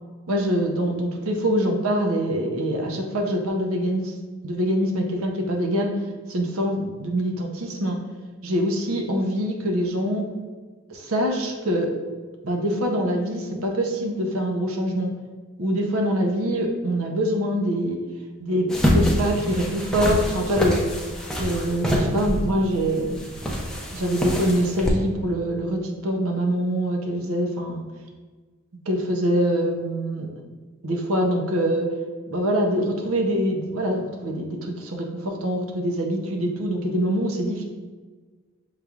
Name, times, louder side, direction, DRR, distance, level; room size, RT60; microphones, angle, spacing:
voice 1, 0.3-4.1 4.4-5.9 6.3-8.0 8.4-10.3 10.9-11.9 12.4-15.1 15.6-18.0 18.4-20.8 21.4-23.2 23.9-27.8 28.9-30.3 30.8-31.9 32.3-37.6, equal, 75° right, 2 dB, 0.7 m, -24 dB
sound 1, 18.7-24.9, equal, 5° left, 0.5 m, -25 dB
6.7 x 3.2 x 2.4 m, 1.4 s
head